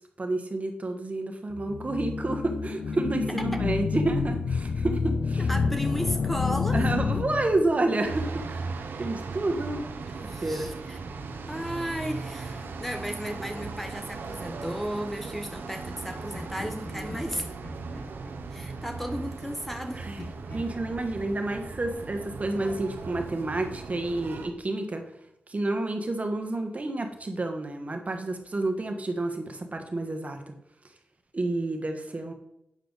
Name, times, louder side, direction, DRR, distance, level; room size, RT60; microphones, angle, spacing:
voice 1, 0.2-5.5 6.7-8.6 9.0-9.8 10.3-10.7 16.9-17.1 19.9-20.2 20.5-25.0 25.5-30.5 31.3-32.3, right 2 dB, 45° right, 5 dB, 1.4 m, -29 dB
sound 1, 1.6-7.9, left 5 dB, 80° left, 0.5 m, -28 dB
voice 2, 5.4-6.8 10.1-11.0 11.5-17.5 18.5-20.1, equal, 5° left, 6 dB, 1.0 m, -34 dB
sound 2, 8.0-24.5, right 4 dB, 85° right, 0.9 m, -38 dB
Laughter, 13.0-15.1 16.3-19.8 20.2-22.9, left 1 dB, 60° left, 2.3 m, -45 dB
8.9 x 6.7 x 4.0 m, 0.80 s
cardioid pair, 50°, 3 cm